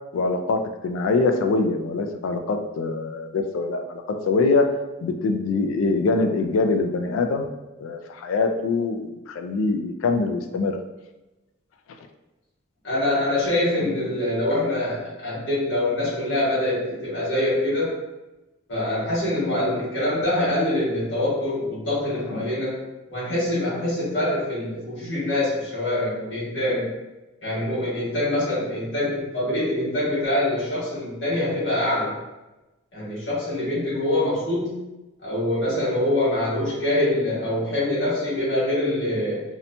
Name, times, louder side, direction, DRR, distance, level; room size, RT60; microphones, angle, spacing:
voice 1, 0.1-4.7 5.0-7.5 7.8-10.7, left 3 dB, 90° left, 6 dB, 0.3 m, -23 dB
voice 2, 12.8-17.9 18.7-22.8 23.1-26.9 27.4-32.2 32.9-34.8 35.2-39.4, left 1 dB, 65° left, -9 dB, 1.2 m, -24 dB
2.8 x 2.1 x 2.7 m, 1.0 s
head